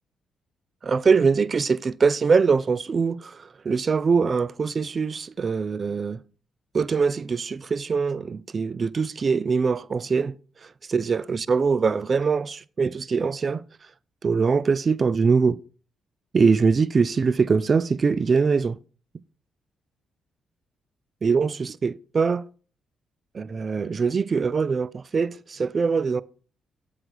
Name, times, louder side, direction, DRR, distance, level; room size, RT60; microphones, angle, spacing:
voice 1, 0.8-6.2 6.7-10.4 10.9-13.6 14.2-15.6 16.3-18.8 21.2-22.4 23.3-26.2, right 5 dB, 45° right, 0.3 m, -23 dB
8.9 x 3.8 x 4.7 m
supercardioid pair, 60°, 0 cm